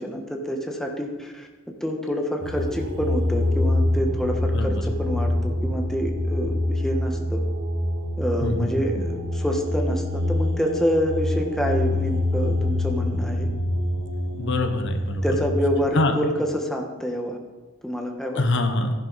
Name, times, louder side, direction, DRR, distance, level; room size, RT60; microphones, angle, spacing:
voice 1, 0.0-1.5 1.8-7.4 8.2-13.5 15.2-17.4 17.8-18.4, equal, ahead, 1 dB, 1.3 m, -27 dB
sound 1, 2.4-15.8, left 1 dB, 65° right, 1.9 m, -25 dB
voice 2, 14.3-15.2 15.9-16.1 18.4-18.9, left 2 dB, 65° left, 6 dB, 1.1 m, -24 dB
14.5 x 11.0 x 4.1 m, 1.2 s
head